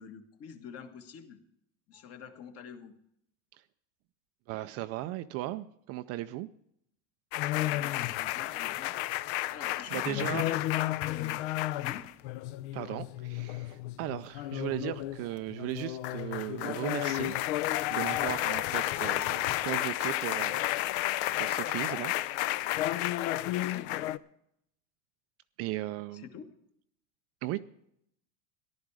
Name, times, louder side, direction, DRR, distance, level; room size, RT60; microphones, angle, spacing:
voice 1, 0.0-1.4 1.9-2.9 7.6-9.0 9.5-11.5 11.8-12.1 18.7-19.0 23.6-24.1 26.1-26.5, left 8 dB, 40° left, 7 dB, 1.6 m, -46 dB
voice 2, 4.5-6.5 9.9-10.4 12.7-17.4 17.9-22.1 22.5-22.6 25.6-26.3 27.4-27.6, right 16 dB, 40° right, 11 dB, 0.4 m, -37 dB
sound 1, 7.3-24.2, left 16 dB, 60° left, 0.6 m, -32 dB
14.5 x 11.5 x 4.8 m, 0.74 s
supercardioid pair, 145°, 38 cm